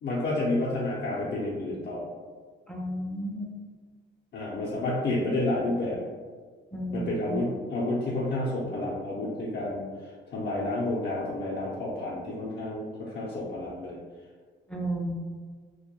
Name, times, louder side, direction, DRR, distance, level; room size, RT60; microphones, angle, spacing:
voice 1, 0.0-2.0 4.3-6.0 6.9-9.8 10.3-14.0, left 2 dB, 65° left, -6 dB, 0.5 m, -30 dB
voice 2, 2.7-3.5 6.7-7.4 14.7-15.1, right 1 dB, 5° left, -2 dB, 0.4 m, -33 dB
2.2 x 2.1 x 2.9 m, 1.5 s
cardioid pair, 90°, 20 cm